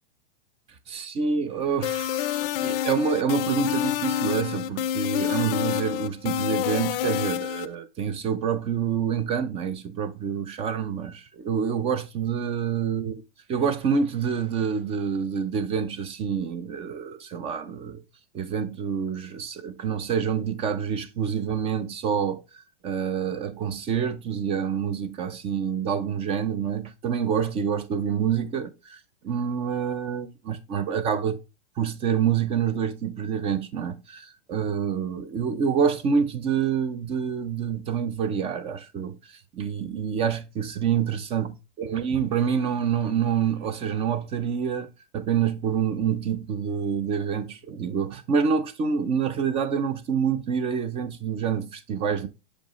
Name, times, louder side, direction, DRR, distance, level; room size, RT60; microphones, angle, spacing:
voice 1, 0.9-13.1 13.5-18.0 18.3-31.4 31.8-44.9 45.1-52.3, right 7 dB, 20° right, 0.4 m, -27 dB
sound 1, 1.8-7.7, left 11 dB, 55° left, 0.5 m, -27 dB
7.4 x 5.2 x 3.0 m
hypercardioid pair, 140°, 34 cm